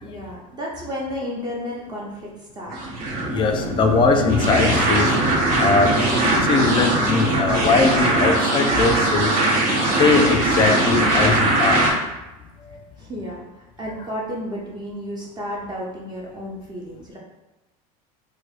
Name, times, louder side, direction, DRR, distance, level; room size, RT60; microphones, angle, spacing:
voice 1, 0.0-2.8 13.0-17.2, equal, 20° right, -4 dB, 0.6 m, -32 dB
sound 1, 2.7-11.9, right 2 dB, 75° right, 1.0 m, -20 dB
voice 2, 3.3-5.2 5.6-9.4 10.0-11.8 12.6-12.8, left 4 dB, 25° left, 4 dB, 0.3 m, -20 dB
4.5 x 2.1 x 2.4 m, 1.0 s
supercardioid pair, 135°, 19 cm